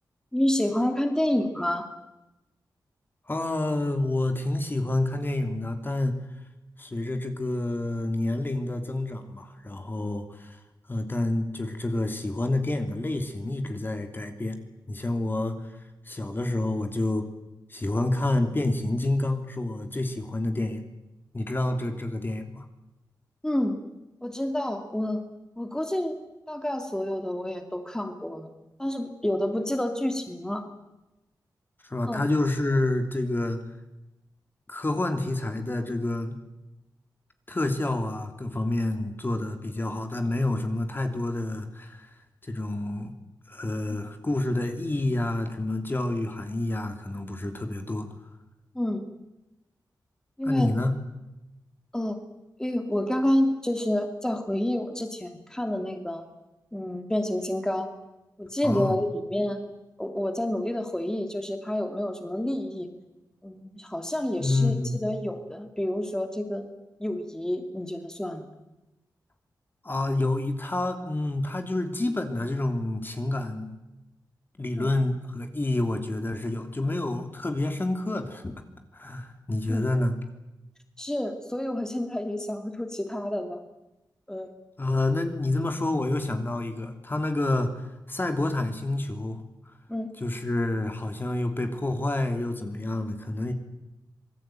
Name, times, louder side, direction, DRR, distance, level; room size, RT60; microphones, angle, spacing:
voice 1, 0.3-1.9 23.4-23.8 24.2-25.2 25.6-26.1 26.5-28.5 28.8-30.6 32.1-32.2 43.9-44.0 48.7-49.0 50.4-50.7 51.9-52.2 52.6-56.2 56.7-57.9 58.4-59.6 60.0-62.9 63.4-64.7 65.0-66.7 67.0-68.4 74.8-74.9 79.7-79.8 81.0-83.6 84.3-84.5 89.9-90.1, left 1 dB, 10° left, 5 dB, 2.8 m, -28 dB
voice 2, 3.3-6.2 6.8-10.6 10.9-14.6 14.9-15.7 16.0-17.3 17.7-20.8 21.3-22.7 31.8-33.6 34.7-36.4 37.5-42.1 42.4-43.1 43.5-48.1 50.4-50.9 58.6-59.0 64.4-65.0 69.8-73.7 74.6-78.5 78.9-80.2 84.8-89.4 90.2-93.5, left 2 dB, 30° left, 6 dB, 3.0 m, -28 dB
26.0 x 19.5 x 9.2 m, 0.98 s
wide cardioid pair, 95°, 8 cm